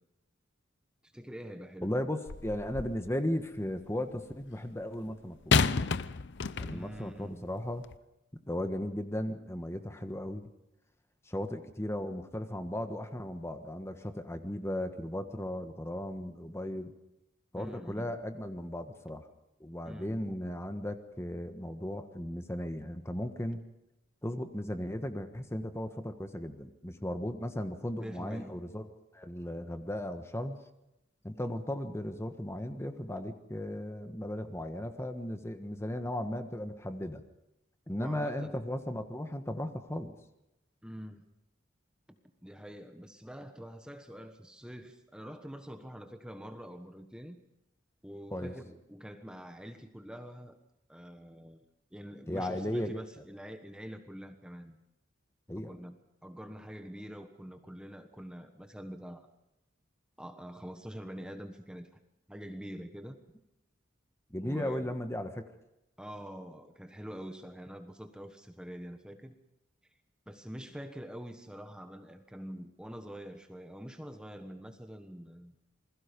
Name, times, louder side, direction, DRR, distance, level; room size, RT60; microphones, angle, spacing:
voice 1, 1.0-1.9 6.7-7.5 17.6-18.2 19.9-20.2 28.0-28.6 38.0-38.6 40.8-41.2 42.4-47.4 48.0-50.6 50.9-51.6 51.9-54.8 55.5-56.0 56.2-59.3 60.2-61.9 62.3-63.2 64.4-64.9 66.0-69.3 70.3-75.5, equal, 5° right, 6 dB, 1.3 m, -45 dB
voice 2, 1.8-5.6 6.6-7.9 8.5-10.5 11.3-16.9 17.5-19.2 19.6-23.6 24.2-28.9 29.1-30.6 31.2-37.2 37.9-40.1 48.3-48.5 52.3-53.0 55.5-55.7 64.3-65.5, left 1 dB, 15° left, 7 dB, 1.4 m, -36 dB
sound 1, 2.3-3.1 5.5-7.0 7.8-8.0, left 5 dB, 60° left, 0.7 m, -30 dB
28.0 x 21.0 x 5.3 m, 0.88 s
head